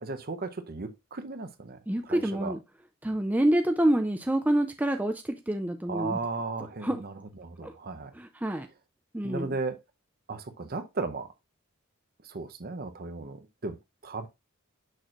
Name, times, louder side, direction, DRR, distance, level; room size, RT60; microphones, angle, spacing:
voice 1, 0.0-1.8 2.1-2.5 5.9-7.1 7.4-8.1 9.2-9.7 10.3-11.3 12.3-13.7 14.0-14.3, right 3 dB, 45° right, 0.8 m, -35 dB
voice 2, 1.9-2.6 3.0-6.2 6.8-7.0 7.6-7.7 8.1-8.7 9.1-9.6, right 1 dB, 5° right, 0.4 m, -27 dB
6.5 x 6.3 x 2.5 m
head